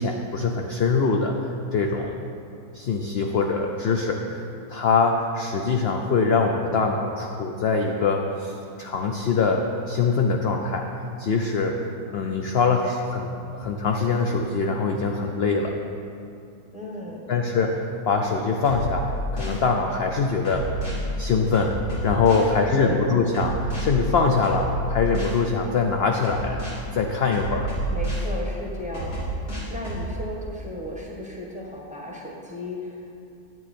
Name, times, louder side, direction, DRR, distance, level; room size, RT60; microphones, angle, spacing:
voice 1, 0.0-2.2 2.7-10.9 11.2-11.8 12.1-15.7 17.3-20.7 21.2-21.8 22.0-26.6 26.9-27.7, left 4 dB, 60° left, 3 dB, 0.6 m, -23 dB
voice 2, 16.7-17.3 22.3-23.1 27.9-29.2 29.7-33.1, left 1 dB, 5° right, -3 dB, 1.2 m, -34 dB
sound 1, 18.6-19.6 20.4-21.0 21.5-22.5 23.3-23.8 24.4-25.4 26.2-26.8 27.3-28.3 28.9-30.1, right 2 dB, 85° left, 3.3 m, -30 dB
10.5 x 8.9 x 4.3 m, 2.6 s
omnidirectional pair, 1.7 m